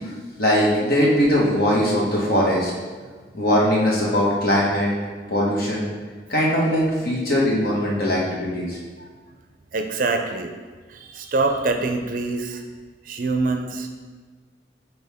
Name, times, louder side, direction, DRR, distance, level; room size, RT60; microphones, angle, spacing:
voice 1, 0.4-2.7 3.3-4.9 5.3-5.9 6.3-8.8, equal, 55° left, -4 dB, 1.4 m, -20 dB
voice 2, 9.7-10.5 10.9-12.6 13.1-13.9, right 3 dB, 50° right, 5 dB, 0.5 m, -25 dB
6.4 x 4.4 x 3.5 m, 1.4 s
head